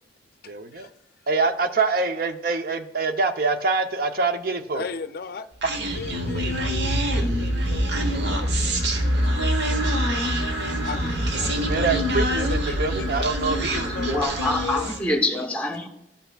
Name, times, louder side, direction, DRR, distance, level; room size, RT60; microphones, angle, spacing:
voice 1, 0.5-0.9 1.3-4.9 5.6-5.8 11.5-14.3, right 3 dB, 50° right, 0.7 m, -25 dB
voice 2, 4.7-5.5 5.9-10.2 10.8-11.5 12.1-12.4 12.7-15.0 15.4-15.5, left 4 dB, 55° left, 0.5 m, -38 dB
Human voice, 5.6-15.1, equal, 65° right, 1.0 m, -25 dB
voice 3, 14.1-15.9, left 1 dB, 10° left, 1.0 m, -25 dB
12.5 x 5.7 x 2.3 m
head